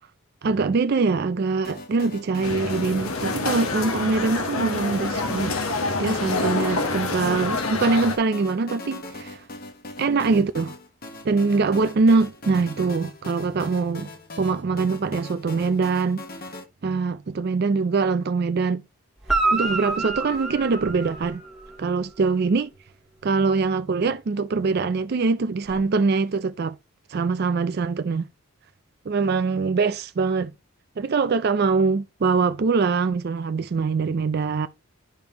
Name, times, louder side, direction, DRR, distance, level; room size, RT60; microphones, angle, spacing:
voice 1, 0.4-5.5 6.0-9.4 10.0-10.7 11.2-14.1 14.4-16.2 16.8-18.8 19.5-21.4 21.8-22.7 23.2-26.8 27.1-28.3 29.1-30.5 31.0-34.7, right 4 dB, 50° right, 0.4 m, -23 dB
sound 1, 1.6-16.6, left 2 dB, 45° left, 1.3 m, -40 dB
sound 2, 2.4-8.2, left 3 dB, 85° left, 1.4 m, -27 dB
Guitar, 19.2-21.8 25.7-25.8, right 3 dB, 5° right, 1.6 m, -27 dB
11.0 x 5.3 x 2.9 m
head